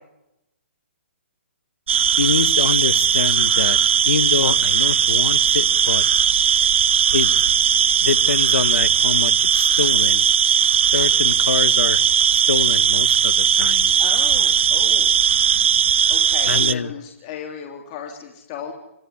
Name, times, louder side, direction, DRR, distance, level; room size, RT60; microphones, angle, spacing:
sound 1, 1.9-16.7, right 8 dB, 65° right, 0.9 m, -18 dB
voice 1, 2.1-3.8 4.0-6.0 7.1-7.3 8.0-10.3 10.9-12.0 12.3-14.0 16.5-16.9, left 6 dB, 80° left, 16 dB, 1.5 m, -25 dB
voice 2, 14.0-15.2 16.1-18.7, left 8 dB, 30° left, 2 dB, 3.5 m, -35 dB
27.5 x 15.5 x 10.0 m, 0.84 s
hypercardioid pair, 155°, 7 cm